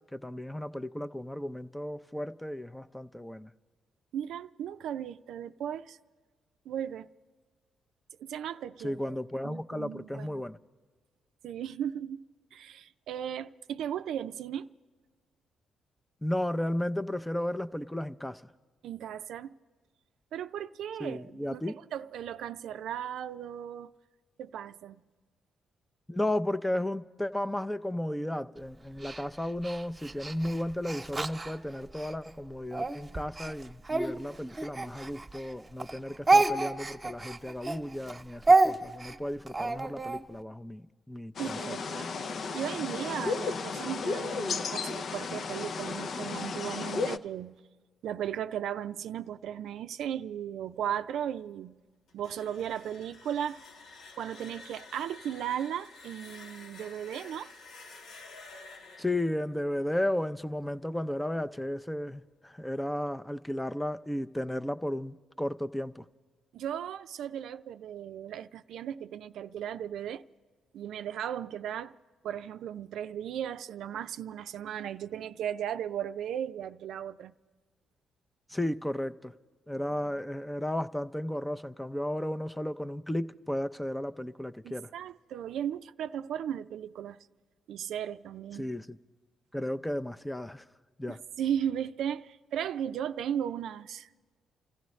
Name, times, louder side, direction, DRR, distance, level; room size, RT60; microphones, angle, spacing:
voice 1, 0.0-3.5 8.8-10.6 16.2-18.4 21.0-21.7 26.1-41.7 59.0-66.0 78.5-79.3 79.7-84.9 88.6-89.0 89.5-90.6 91.0-91.2, left 1 dB, 10° left, 0.5 m, -34 dB
voice 2, 4.1-6.0 6.7-7.1 8.2-9.2 9.4-10.4 11.4-12.2 12.5-14.7 18.8-19.5 20.3-23.9 24.4-25.0 41.4-42.1 42.5-47.6 48.0-51.8 52.1-53.6 54.1-57.5 66.5-70.3 70.7-71.9 72.2-77.3 84.6-87.2 87.7-88.7 91.1-94.2, right 9 dB, 75° right, 0.4 m, -36 dB
Speech, 29.0-32.1 32.7-35.5 35.8-40.2, right 3 dB, 20° right, 1.0 m, -28 dB
sound 1, 41.4-47.2, left 4 dB, 55° left, 0.6 m, -34 dB
sound 2, 52.1-60.9, left 3 dB, 85° left, 1.7 m, -51 dB
29.0 x 15.0 x 3.2 m
cardioid pair, 90°, 0 cm